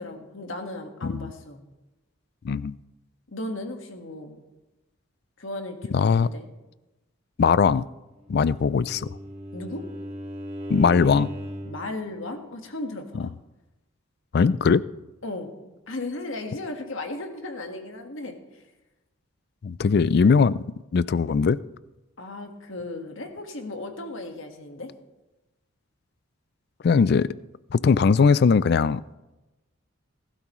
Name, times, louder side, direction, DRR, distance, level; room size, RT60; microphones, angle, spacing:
voice 1, 0.0-1.6 3.3-4.4 5.4-6.5 9.5-9.9 11.6-13.3 15.2-15.5 15.9-18.6 22.2-24.9, left 2 dB, 65° left, 4 dB, 1.6 m, -36 dB
voice 2, 5.9-6.3 7.4-7.9 8.3-9.1 10.7-11.3 13.1-13.3 14.3-14.8 19.6-20.6 20.9-21.6 26.8-27.3 27.7-29.0, left 5 dB, 50° left, 18 dB, 0.3 m, -20 dB
Bowed string instrument, 8.3-11.9, equal, 30° right, 1.4 m, -37 dB
19.0 x 12.5 x 3.1 m, 1.0 s
head